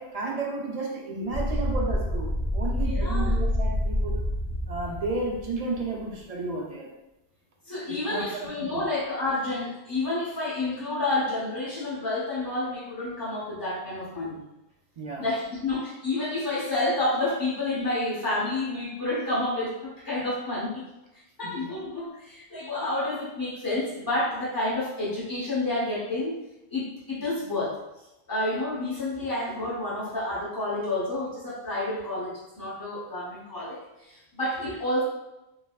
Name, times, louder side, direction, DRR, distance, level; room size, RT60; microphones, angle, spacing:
voice 1, 0.0-4.2 4.7-6.9 7.9-8.8 15.0-15.3 21.4-21.7, right 3 dB, 50° right, -1 dB, 0.4 m, -33 dB
sound 1, 1.3-5.9, left 1 dB, 60° left, 0.9 m, -27 dB
voice 2, 2.8-3.3 7.7-14.4 15.2-20.8 21.4-26.4 26.7-27.8 28.3-35.0, left 2 dB, 20° left, -8 dB, 1.0 m, -29 dB
3.3 x 2.2 x 2.3 m, 0.94 s
omnidirectional pair, 1.1 m